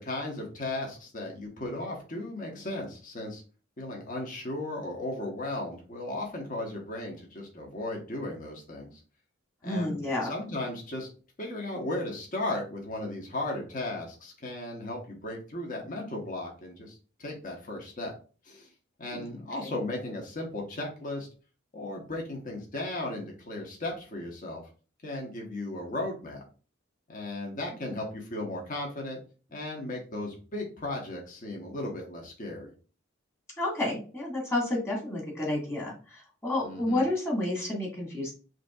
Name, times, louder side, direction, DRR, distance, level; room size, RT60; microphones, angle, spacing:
voice 1, 0.0-3.4 3.8-9.0 9.6-10.0 10.3-11.1 11.4-18.1 18.4-18.7 19.0-21.3 21.7-24.6 25.0-26.4 27.1-29.2 29.5-32.7 36.6-37.0, left 2 dB, 40° left, 0 dB, 1.0 m, -36 dB
voice 2, 9.6-10.3 19.1-19.2 19.6-19.7 27.9-28.0 33.6-38.3, left 1 dB, 15° left, -3 dB, 1.7 m, -30 dB
5.7 x 2.7 x 2.3 m, 0.36 s
head